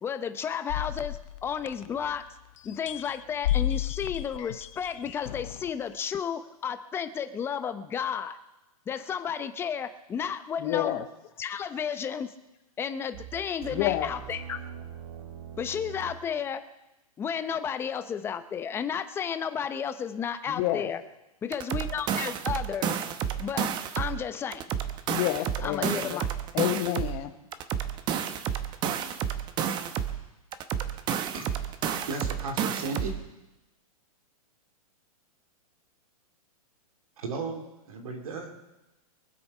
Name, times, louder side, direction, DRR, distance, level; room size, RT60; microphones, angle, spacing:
voice 1, 0.0-2.3 2.6-8.4 8.9-11.0 11.4-12.3 12.8-14.6 15.6-16.6 17.2-21.0 21.4-23.0 23.4-24.7 25.6-26.3, left 7 dB, 10° left, 10 dB, 0.6 m, -32 dB
sound 1, 0.7-2.3 2.6-5.7, left 13 dB, 55° left, 0.4 m, -32 dB
voice 2, 10.6-11.1 13.7-14.1 20.5-20.9 25.1-26.2 26.5-27.3, left 14 dB, 30° left, 12 dB, 1.0 m, -29 dB
sound 2, 13.1-16.3, right 9 dB, 55° right, 1.6 m, -43 dB
sound 3, 21.5-24.2 24.5-27.2 27.5-30.2 30.5-33.2, right 8 dB, 25° right, 0.8 m, -30 dB
voice 3, 32.1-33.1 37.2-38.5, right 3 dB, 70° right, 3 dB, 2.8 m, -35 dB
24.0 x 8.0 x 5.5 m, 0.99 s
hypercardioid pair, 150°, 19 cm